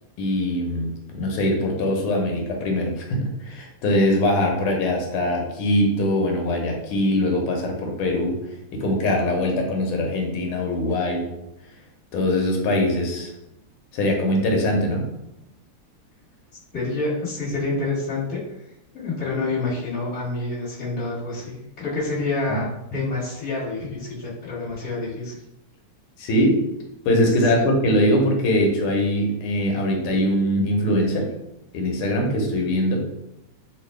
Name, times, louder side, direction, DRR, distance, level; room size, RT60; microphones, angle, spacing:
voice 1, 0.2-11.3 12.1-13.3 13.9-15.1 22.5-22.6 26.2-26.6 27.0-31.3 31.7-33.0, left 1 dB, 85° left, 1 dB, 1.7 m, -22 dB
voice 2, 16.7-18.4 18.9-25.3 27.5-27.6, left 3 dB, 40° left, -8 dB, 1.9 m, -28 dB
3.8 x 2.5 x 3.2 m, 0.87 s
omnidirectional pair, 2.3 m